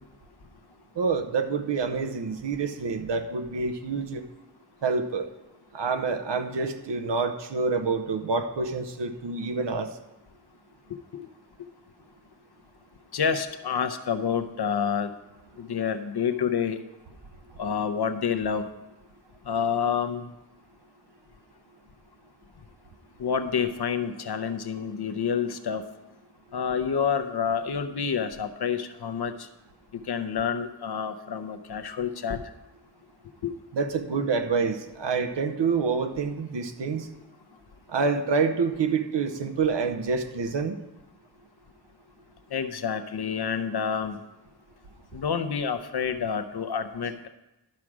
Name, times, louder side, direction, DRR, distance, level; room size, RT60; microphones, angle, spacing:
voice 1, 1.0-4.2 4.8-5.3 5.7-9.9 33.7-37.1 37.9-40.8, right 4 dB, 85° right, 7 dB, 0.9 m, -27 dB
voice 2, 13.1-15.1 15.6-16.8 17.6-18.7 19.5-20.2 23.2-25.9 26.5-29.3 30.1-32.4 33.4-33.5 42.5-44.2 45.1-47.3, left 7 dB, 65° left, 8 dB, 0.8 m, -28 dB
12.0 x 4.9 x 6.0 m, 0.97 s
wide cardioid pair, 95°, 42 cm